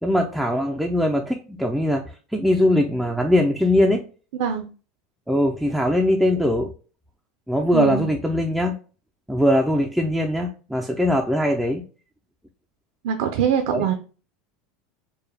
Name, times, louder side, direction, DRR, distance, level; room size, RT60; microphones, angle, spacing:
voice 1, 0.0-2.0 2.3-4.0 5.3-6.7 7.5-8.8 9.3-11.8 13.7-13.9, left 1 dB, ahead, 0 dB, 0.3 m, -21 dB
voice 2, 4.3-4.7 7.7-8.1 13.0-13.9, right 8 dB, 65° right, 5 dB, 0.5 m, -23 dB
4.5 x 2.2 x 3.2 m, 0.36 s
supercardioid pair, 170°, 0 cm